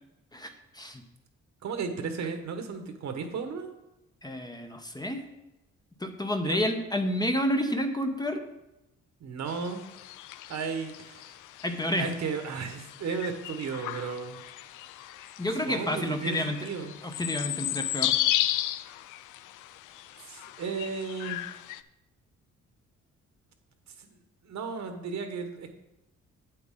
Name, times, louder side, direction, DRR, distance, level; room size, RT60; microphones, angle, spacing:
voice 1, 0.3-1.0 4.2-5.3 6.0-8.5 11.6-12.1 15.4-16.6 17.0-18.2, left 1 dB, 15° left, 5 dB, 0.9 m, -30 dB
voice 2, 1.6-3.7 6.4-6.7 9.2-9.8 10.5-11.4 12.0-14.4 15.6-16.9 20.2-21.6 23.9-24.2 24.4-25.7, right 5 dB, 65° right, 6 dB, 1.3 m, -34 dB
sound 1, 9.5-21.8, left 14 dB, 85° left, 0.5 m, -34 dB
8.5 x 7.9 x 3.8 m, 0.95 s
cardioid pair, 90°, 30 cm